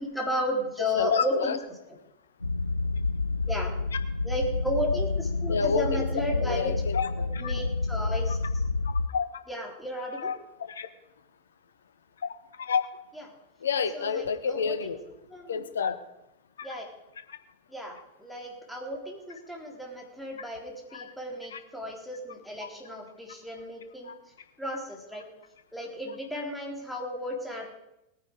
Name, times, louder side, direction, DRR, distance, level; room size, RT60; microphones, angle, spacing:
voice 1, 0.0-1.6 1.9-2.0 3.5-3.7 4.2-6.8 7.4-8.6 9.5-10.3 13.1-13.3 13.9-15.0 15.3-15.6 16.6-16.8 17.7-24.1 24.6-25.3 25.7-27.8, equal, ahead, -1 dB, 3.5 m, -34 dB
voice 2, 0.9-1.6 5.5-6.0 6.4-7.5 9.1-9.2 10.2-10.3 10.7-10.9 12.6-12.8 13.6-15.0 15.5-16.0 16.6-16.7 20.9-21.0 21.5-21.6 24.1-24.2, left 6 dB, 65° left, 10 dB, 1.2 m, -29 dB
sound 1, 2.4-9.1, left 3 dB, 85° left, 0.4 m, -29 dB
19.5 x 9.6 x 5.0 m, 0.88 s
figure-of-eight pair, 90°, 0 cm